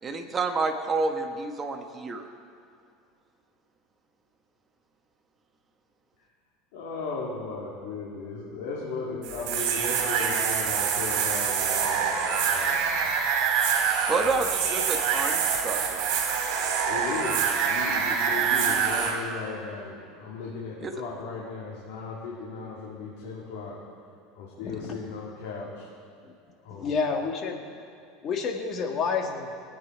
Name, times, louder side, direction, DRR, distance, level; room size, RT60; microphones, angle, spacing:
voice 1, 0.0-2.3 14.1-16.0 20.8-20.9, right 3 dB, 25° right, 5 dB, 1.2 m, -29 dB
voice 2, 6.7-13.1 14.2-14.5 16.8-23.8 24.4-25.9 26.6-26.9, left 4 dB, 70° left, -5 dB, 2.6 m, -36 dB
sound 1, 9.2-19.1, right 7 dB, 60° right, 3.0 m, -25 dB
voice 3, 24.6-25.0 26.2-26.3 26.7-27.9 28.2-29.5, left 5 dB, 35° left, 3 dB, 1.7 m, -30 dB
20.5 x 9.2 x 4.6 m, 2.5 s
supercardioid pair, 130°, 0 cm